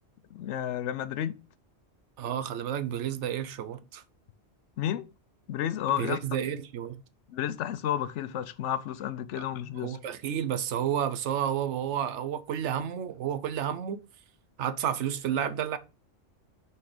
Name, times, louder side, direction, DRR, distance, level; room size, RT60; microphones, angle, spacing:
voice 1, 0.3-1.4 4.8-5.1 5.5-6.2 7.3-10.0, left 11 dB, 85° left, 0.9 m, -31 dB
voice 2, 2.2-4.0 5.9-7.0 9.4-9.5 9.8-14.0 14.6-15.8, right 9 dB, 85° right, 1.0 m, -31 dB
5.6 x 4.4 x 4.9 m
omnidirectional pair, 1.2 m